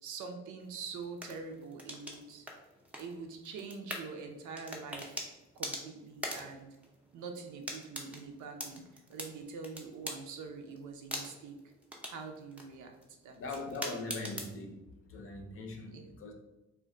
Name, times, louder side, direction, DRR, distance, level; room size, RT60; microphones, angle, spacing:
voice 1, 0.0-2.5 3.0-5.3 5.6-6.7 7.1-11.6 12.1-13.4 15.9-16.2, right 4 dB, 75° right, 0.5 m, -45 dB
sound 1, 0.6-14.6, equal, 5° right, 0.5 m, -45 dB
voice 2, 13.4-14.8 15.1-16.3, left 2 dB, 45° left, 0.6 m, -41 dB
2.2 x 2.2 x 3.6 m
cardioid pair, 90°, 30 cm